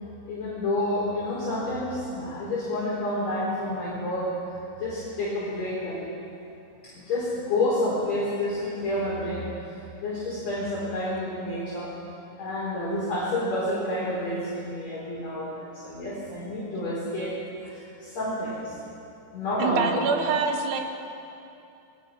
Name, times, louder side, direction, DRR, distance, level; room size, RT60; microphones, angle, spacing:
voice 1, 0.3-4.3 4.8-6.0 6.8-9.5 10.0-11.9 12.4-17.3 17.6-18.7 19.3-20.0, left 1 dB, 40° left, -7 dB, 5.1 m, -29 dB
voice 2, 19.6-20.8, right 5 dB, 75° right, 4 dB, 3.5 m, -25 dB
28.5 x 20.5 x 5.9 m, 2.8 s
omnidirectional pair, 5.2 m